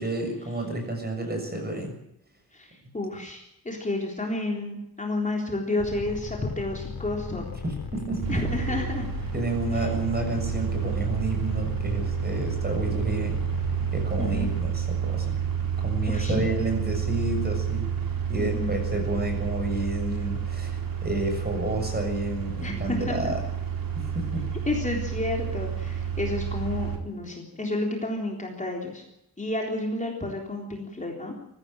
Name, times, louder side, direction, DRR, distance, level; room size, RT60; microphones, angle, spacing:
voice 1, 0.0-1.9 7.6-8.4 8.7-8.8 9.3-13.4 13.9-15.4 15.8-17.9 18.3-23.4 23.9-24.4, right 2 dB, 25° right, 4 dB, 6.8 m, -30 dB
voice 2, 2.5-7.5 8.3-9.1 9.7-9.8 14.2-14.5 16.1-16.4 18.4-18.7 22.6-23.3 24.7-29.0 29.4-31.3, left 2 dB, 20° left, 0 dB, 3.7 m, -31 dB
sound 1, 5.8-14.7, left 5 dB, 65° left, 4.4 m, -36 dB
sound 2, 8.2-27.0, right 8 dB, 65° right, 4.0 m, -30 dB
22.0 x 15.5 x 9.0 m, 0.82 s
wide cardioid pair, 170°, 38 cm